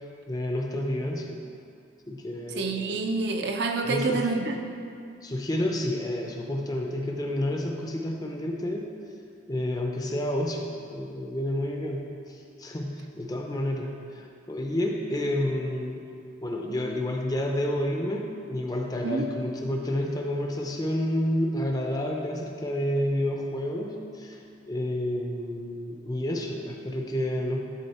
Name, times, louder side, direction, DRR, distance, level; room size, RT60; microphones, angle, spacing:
voice 1, 0.3-1.4 2.1-3.0 3.9-4.3 5.2-8.9 9.5-16.0 16.4-24.4 24.7-27.6, left 1 dB, 20° left, 1 dB, 0.5 m, -30 dB
voice 2, 2.6-4.6 19.0-19.3, right 3 dB, 55° right, 4 dB, 0.5 m, -27 dB
11.0 x 3.9 x 4.2 m, 2.5 s
head